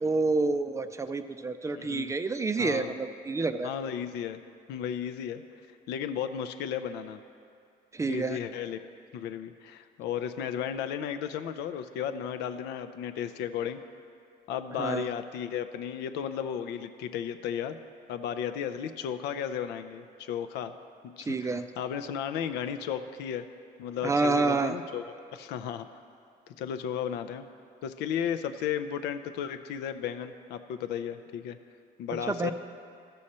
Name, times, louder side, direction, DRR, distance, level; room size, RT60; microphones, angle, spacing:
voice 1, 0.0-3.7 7.9-8.4 14.8-15.1 21.3-21.6 24.0-24.7 32.3-32.5, right 3 dB, 20° right, 9 dB, 0.4 m, -28 dB
voice 2, 1.7-2.1 2.6-2.9 3.6-4.4 4.7-5.4 5.9-7.2 8.1-8.8 9.1-13.8 14.5-17.8 18.1-20.7 21.2-23.5 23.8-25.0 25.3-25.9 26.5-27.5 27.8-31.6 32.0-32.5, left 8 dB, 85° left, 9 dB, 0.5 m, -34 dB
13.0 x 6.4 x 4.3 m, 2.4 s
cardioid pair, 110°, 17 cm